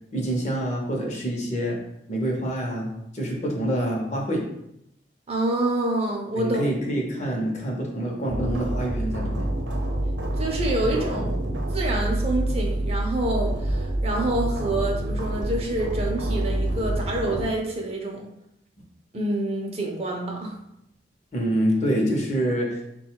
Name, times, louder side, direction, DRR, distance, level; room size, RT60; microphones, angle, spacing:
voice 1, 0.1-1.8 2.1-4.4 6.4-9.5 11.2-11.3 21.3-22.8, equal, 40° left, -1 dB, 0.8 m, -26 dB
voice 2, 5.3-6.6 10.4-11.3 11.7-18.3 19.1-20.6, right 1 dB, 35° right, 0 dB, 0.6 m, -27 dB
sound 1, 8.3-17.4, right 1 dB, 85° right, 0.7 m, -27 dB
3.6 x 2.3 x 4.5 m, 0.80 s
head